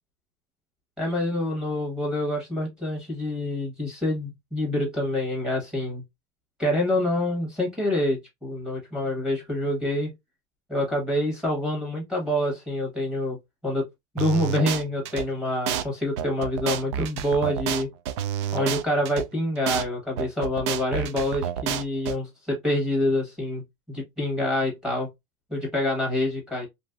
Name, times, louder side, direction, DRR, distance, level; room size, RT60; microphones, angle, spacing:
voice 1, 1.0-6.0 6.6-10.1 10.7-13.4 13.6-13.9 14.1-17.9 18.5-23.6 23.9-25.1 25.5-26.7, left 1 dB, 5° right, 1.1 m, -26 dB
sound 1, 14.2-15.2 15.7-15.8 16.2-19.2 19.7-19.8 20.2-22.1, right 10 dB, 85° right, 0.4 m, -29 dB
2.9 x 2.5 x 2.3 m
cardioid pair, 175°, 14 cm